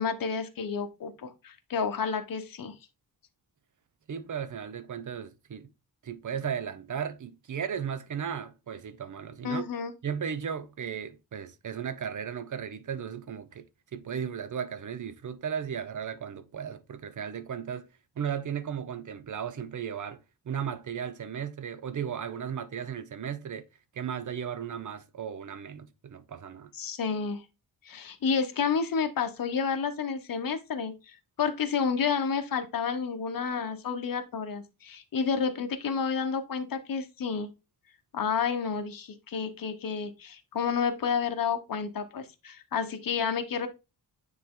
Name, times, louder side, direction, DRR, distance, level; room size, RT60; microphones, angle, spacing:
voice 1, 0.0-2.7 9.4-9.9 26.7-27.4 27.8-37.5 38.1-43.7, left 6 dB, 55° left, 1.1 m, -30 dB
voice 2, 4.1-5.7 6.0-9.7 10.0-13.7 13.9-17.9 18.2-23.7 23.9-26.7, right 8 dB, 50° right, 0.7 m, -35 dB
9.3 x 3.5 x 3.7 m
wide cardioid pair, 170°, 40 cm